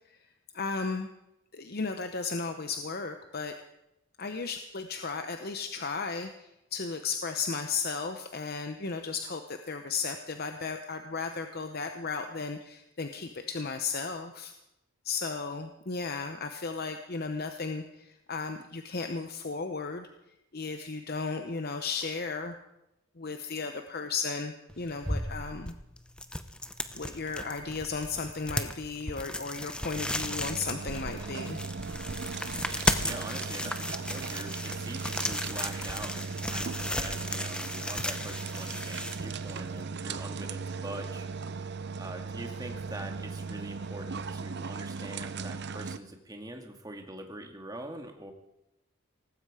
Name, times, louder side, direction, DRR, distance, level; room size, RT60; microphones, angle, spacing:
voice 1, 0.5-1.1 1.5-3.5 4.2-14.5 15.0-20.1 20.5-22.6 23.2-25.7 26.9-31.6, left 4 dB, 45° left, 7 dB, 0.9 m, -35 dB
sound 1, 24.7-39.8, left 1 dB, 5° left, 0.7 m, -35 dB
sound 2, 29.9-46.0, right 4 dB, 50° right, 0.7 m, -38 dB
voice 2, 33.0-41.3 42.0-48.3, right 1 dB, 15° right, 4 dB, 1.9 m, -43 dB
18.5 x 16.0 x 4.9 m, 0.89 s
head